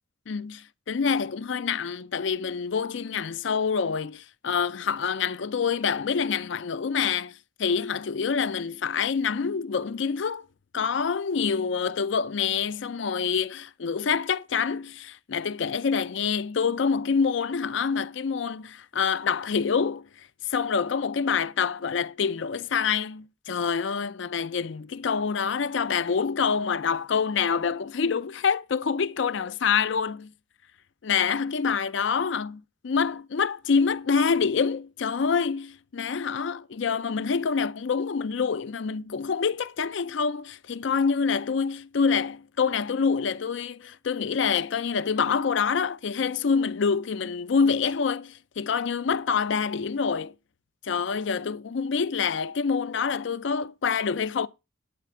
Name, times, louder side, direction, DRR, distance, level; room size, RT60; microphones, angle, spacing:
voice 1, 0.3-10.5 10.7-30.2 31.0-32.6 32.8-50.3 50.8-54.5, left 6 dB, 65° left, 0.5 m, -26 dB
12.0 x 4.3 x 6.7 m
head